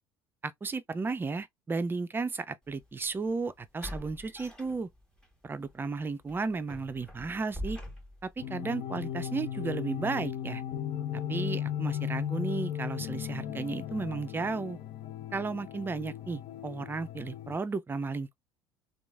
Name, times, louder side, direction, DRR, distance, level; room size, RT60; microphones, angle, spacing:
voice 1, 0.4-4.9 5.4-7.8 8.2-10.6 11.1-14.8 15.3-18.4, right 4 dB, 15° right, 0.4 m, -34 dB
sound 1, 2.7-2.8 3.8-5.3 5.7-5.8 6.3-8.4, left 1 dB, 5° left, 1.4 m, -43 dB
sound 2, 8.4-17.6, left 10 dB, 50° left, 0.5 m, -36 dB
3.0 x 2.3 x 2.4 m
figure-of-eight pair, 65°, 12 cm